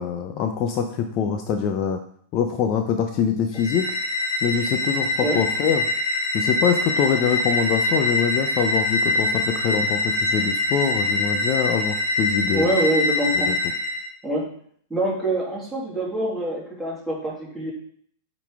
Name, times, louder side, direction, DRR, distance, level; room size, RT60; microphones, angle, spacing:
voice 1, 0.0-2.0 2.3-3.9 4.4-5.8 6.3-12.7 13.4-13.6, left 7 dB, 45° left, 6 dB, 0.6 m, -24 dB
sound 1, 3.5-14.1, left 2 dB, 80° left, 1.5 m, -24 dB
voice 2, 12.5-13.5 14.2-14.5 14.9-17.7, right 1 dB, 5° right, -6 dB, 2.8 m, -25 dB
8.2 x 4.0 x 3.5 m, 0.62 s
hypercardioid pair, 110°, 0 cm